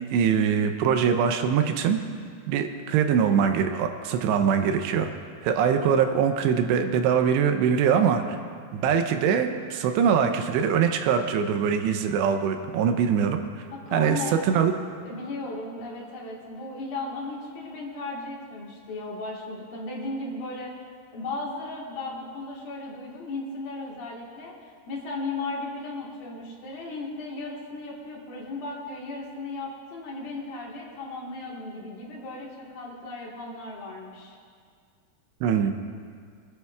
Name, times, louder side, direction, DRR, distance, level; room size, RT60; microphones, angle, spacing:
voice 1, 0.1-2.0 2.5-5.1 5.4-8.2 8.7-13.4 13.9-14.2 14.5-14.7 35.4-35.7, right 7 dB, 85° right, 6 dB, 2.9 m, -23 dB
voice 2, 13.7-14.4 15.0-20.8 21.1-34.4, left 2 dB, 65° left, -3 dB, 3.1 m, -36 dB
23.5 x 11.5 x 2.4 m, 2.1 s
omnidirectional pair, 4.9 m